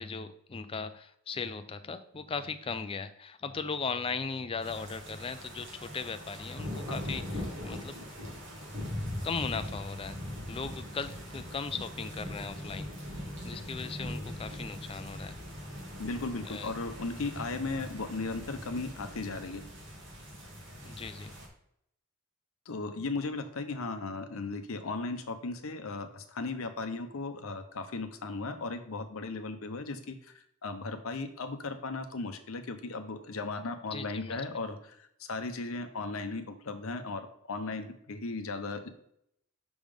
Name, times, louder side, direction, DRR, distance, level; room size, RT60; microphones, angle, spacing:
voice 1, 0.0-7.9 9.2-10.2 10.5-12.9 13.4-15.4 16.4-16.7 20.8-21.4 33.9-34.4, left 5 dB, 25° left, 10 dB, 0.4 m, -38 dB
sound 1, 4.6-21.5, left 1 dB, 55° right, 2.0 m, -41 dB
voice 2, 16.0-19.6 22.7-38.9, left 3 dB, 70° left, 8 dB, 0.7 m, -36 dB
6.1 x 3.6 x 5.0 m, 0.74 s
head